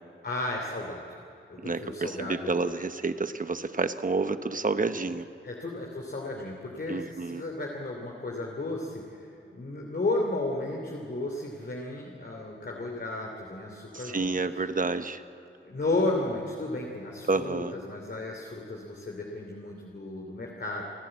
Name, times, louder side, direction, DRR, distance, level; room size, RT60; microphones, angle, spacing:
voice 1, 0.2-1.0 1.5-2.5 5.4-14.3 15.6-20.8, left 2 dB, 55° left, 0 dB, 2.7 m, -33 dB
voice 2, 1.6-5.3 6.9-7.4 13.9-15.2 17.3-17.7, right 3 dB, 40° right, 10 dB, 1.0 m, -29 dB
28.5 x 12.0 x 8.8 m, 2.8 s
wide cardioid pair, 70°, 20 cm